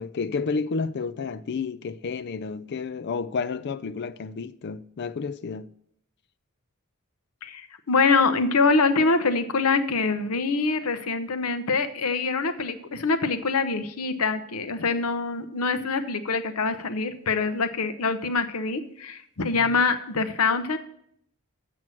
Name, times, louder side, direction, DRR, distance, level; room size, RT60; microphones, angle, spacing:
voice 1, 0.0-5.7 19.5-19.7, left 4 dB, 50° left, 0.4 m, -31 dB
voice 2, 7.4-20.8, left 4 dB, 90° left, 0.8 m, -24 dB
7.7 x 6.0 x 7.5 m
head